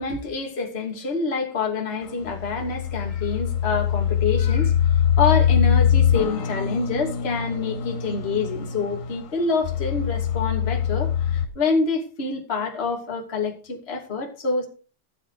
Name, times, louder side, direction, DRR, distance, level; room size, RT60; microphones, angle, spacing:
voice 1, 0.0-14.6, left 4 dB, 20° left, 1 dB, 1.7 m, -27 dB
sound 1, 2.0-11.5, left 9 dB, 70° left, 3.9 m, -23 dB
15.0 x 7.8 x 4.9 m, 0.37 s
omnidirectional pair, 5.5 m